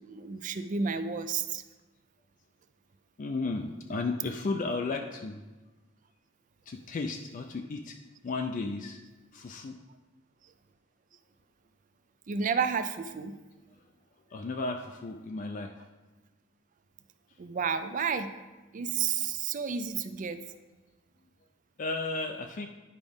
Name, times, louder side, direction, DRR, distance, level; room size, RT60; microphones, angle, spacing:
voice 1, 0.0-1.6 12.3-13.4 17.4-18.3 18.7-20.4, right 6 dB, 40° right, 11 dB, 0.4 m, -31 dB
voice 2, 3.2-5.4 6.7-8.0 8.2-9.0 9.3-9.8 14.3-15.8 21.8-22.7, left 3 dB, 40° left, 4 dB, 0.4 m, -34 dB
9.7 x 5.1 x 3.5 m, 1.2 s
head